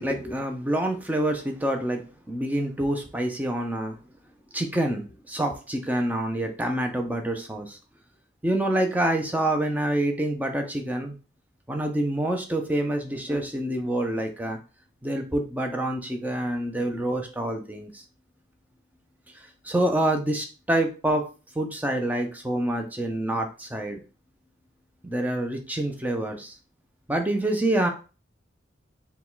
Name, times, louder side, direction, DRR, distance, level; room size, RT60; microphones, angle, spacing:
voice 1, 0.0-2.0 2.3-3.9 4.5-7.8 8.4-11.2 11.7-14.6 15.0-18.0 19.6-21.2 21.6-24.0 25.0-26.5 27.1-27.9, right 1 dB, 10° right, 4 dB, 0.5 m, -27 dB
4.6 x 2.2 x 3.8 m, 0.35 s
head